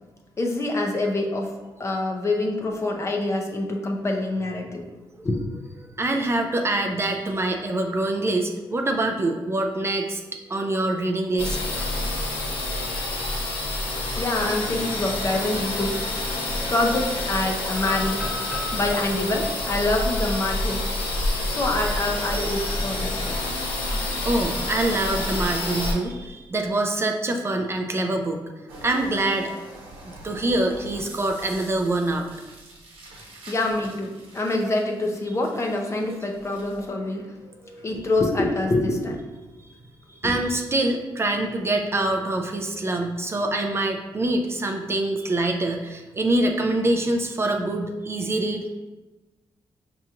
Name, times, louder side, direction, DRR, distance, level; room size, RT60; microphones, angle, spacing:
voice 1, 0.4-1.5 1.8-4.9 5.2-5.4 14.2-16.0 16.7-18.3 18.7-20.8 21.4-23.3 33.5-37.3 37.8-39.2 40.2-40.4, left 2 dB, 30° left, 1 dB, 0.6 m, -25 dB
voice 2, 6.0-10.2 10.5-11.6 16.6-16.7 18.6-18.7 24.2-28.5 28.8-29.5 30.2-32.3 37.4-38.1 40.1-48.7, right 2 dB, 30° right, 3 dB, 0.4 m, -25 dB
sound 1, 11.4-25.9, left 2 dB, 90° left, 0.8 m, -28 dB
sound 2, 17.7-21.7 22.1-22.2 22.7-23.0 24.3-25.2, left 3 dB, 5° right, 0.7 m, -38 dB
sound 3, 28.7-36.9, right 2 dB, 80° right, 0.9 m, -45 dB
5.5 x 2.9 x 2.4 m, 1.2 s
cardioid pair, 100°, 9 cm